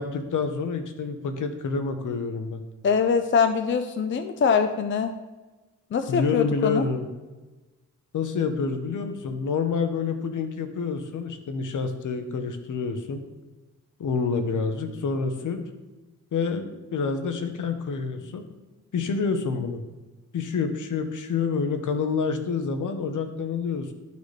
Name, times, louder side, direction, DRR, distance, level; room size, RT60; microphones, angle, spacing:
voice 1, 0.0-2.6 6.1-7.1 8.1-13.2 14.0-15.6 16.3-18.4 18.9-19.8 20.3-23.9, left 5 dB, 70° left, 7 dB, 0.9 m, -28 dB
voice 2, 2.8-5.1 5.9-6.8, left 6 dB, 40° left, 8 dB, 0.5 m, -23 dB
11.5 x 4.1 x 3.2 m, 1.2 s
cardioid pair, 90°, 32 cm